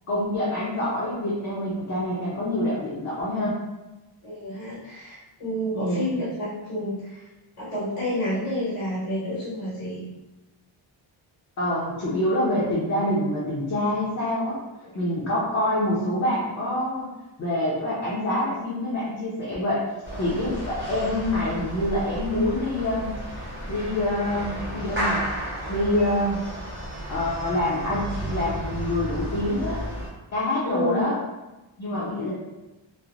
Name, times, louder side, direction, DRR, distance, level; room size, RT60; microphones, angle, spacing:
voice 1, 0.1-3.5 5.7-6.2 11.6-14.6 14.9-17.1 17.4-19.8 20.2-23.1 23.7-25.3 25.7-26.4 27.1-29.8 30.3-31.1 31.8-32.3, left 1 dB, 35° left, -8 dB, 0.6 m, -26 dB
voice 2, 4.2-7.2 7.6-10.0 14.8-14.9 30.6-31.1 31.9-32.3, left 1 dB, 85° left, -9 dB, 1.2 m, -29 dB
sound 1, 20.0-30.1, equal, 25° right, 0.8 m, -33 dB
3.1 x 2.0 x 2.4 m, 1.0 s
wide cardioid pair, 160°, 49 cm